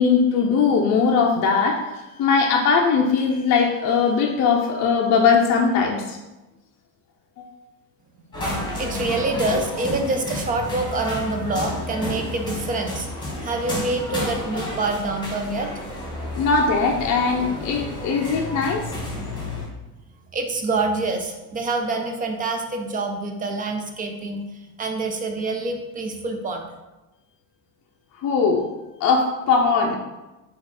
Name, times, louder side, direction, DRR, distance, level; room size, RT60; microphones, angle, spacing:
voice 1, 0.0-1.9 2.2-6.2 7.4-7.5 16.4-18.8 28.2-28.7 29.0-30.0, left 5 dB, 40° left, 0 dB, 0.5 m, -20 dB
sound 1, 8.3-19.7, left 1 dB, 10° left, 1.3 m, -31 dB
voice 2, 8.8-15.7 20.3-24.4 24.8-26.7, right 3 dB, 20° right, 4 dB, 0.3 m, -26 dB
4.6 x 2.5 x 4.1 m, 1.1 s
supercardioid pair, 110°, 45 cm